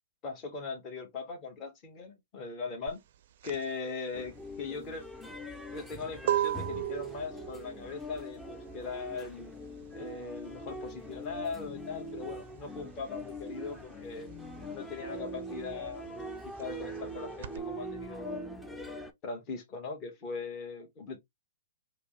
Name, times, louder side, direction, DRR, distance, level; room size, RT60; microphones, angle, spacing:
voice 1, 0.2-3.0 3.4-5.0 5.7-9.5 9.9-14.3 14.7-16.1 16.4-18.4 19.2-21.2, left 4 dB, 30° left, 1.2 m, -40 dB
sound 1, 2.9-13.1 13.4-17.6, right 12 dB, 55° right, 0.4 m, -37 dB
sound 2, 4.1-19.1, equal, 5° left, 0.5 m, -42 dB
5.0 x 2.1 x 3.1 m
hypercardioid pair, 125°, 0 cm